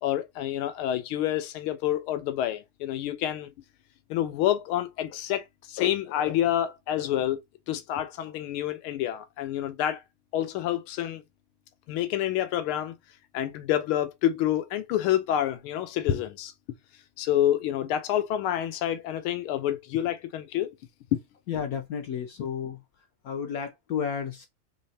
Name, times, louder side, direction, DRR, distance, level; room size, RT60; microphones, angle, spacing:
voice 1, 0.0-3.5 4.1-7.4 7.7-10.0 10.3-11.2 11.9-12.9 13.3-16.5 17.2-20.7 21.1-21.2, left 12 dB, 90° left, 1.6 m, -28 dB
voice 2, 21.5-22.8 23.2-24.5, left 7 dB, 75° left, 0.8 m, -32 dB
4.0 x 3.2 x 4.1 m
omnidirectional pair, 2.3 m